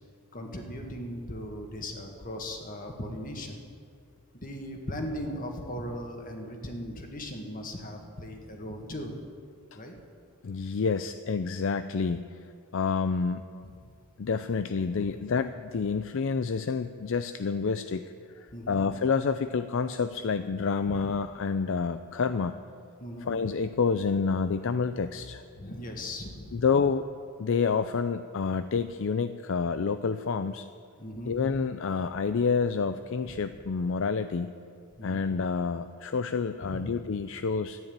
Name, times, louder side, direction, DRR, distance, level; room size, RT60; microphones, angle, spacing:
voice 1, 0.3-3.6 4.4-9.1 9.8-9.9 18.5-18.8 20.9-21.0 23.0-23.3 25.5-26.6 31.0-31.3 33.2-33.4 35.0-35.2 36.6-36.8, equal, 40° left, 3 dB, 1.9 m, -38 dB
voice 2, 10.4-12.3 12.7-13.4 14.2-18.0 18.7-22.6 23.2-25.4 26.5-27.0 27.4-30.7 31.3-34.5 35.0-37.8, left 5 dB, 60° left, 11 dB, 0.4 m, -28 dB
13.5 x 9.9 x 8.9 m, 2.3 s
head